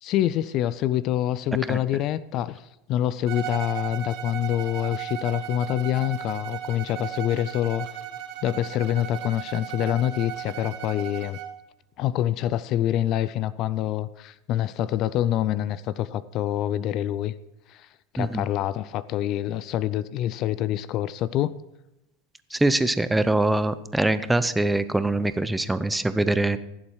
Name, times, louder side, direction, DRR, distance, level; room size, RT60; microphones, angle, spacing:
voice 1, 0.0-7.9 8.4-11.4 12.0-17.3 17.7-17.9 18.1-21.5, left 12 dB, 45° left, 18 dB, 0.4 m, -26 dB
Bowed string instrument, 3.3-11.6, right 11 dB, 55° right, 1.3 m, -36 dB
voice 2, 22.5-26.6, right 2 dB, 5° right, 13 dB, 0.5 m, -23 dB
15.5 x 7.3 x 4.7 m, 0.92 s
supercardioid pair, 130°, 0 cm